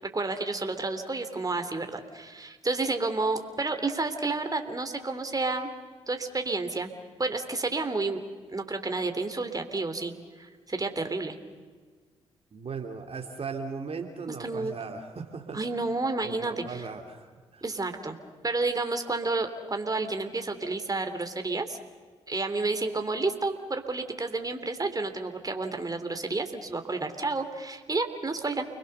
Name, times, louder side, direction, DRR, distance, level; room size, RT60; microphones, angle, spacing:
voice 1, 0.0-5.7 6.1-6.9 7.2-8.2 8.5-10.1 10.4-11.4 14.4-14.7 15.5-16.8 17.6-18.2 18.4-21.8 22.3-28.6, right 3 dB, 30° right, 7 dB, 3.2 m, -30 dB
voice 2, 12.5-15.6 16.2-17.6, right 5 dB, 50° right, 3 dB, 2.8 m, -38 dB
29.5 x 21.5 x 6.8 m, 1.5 s
hypercardioid pair, 45°, 13 cm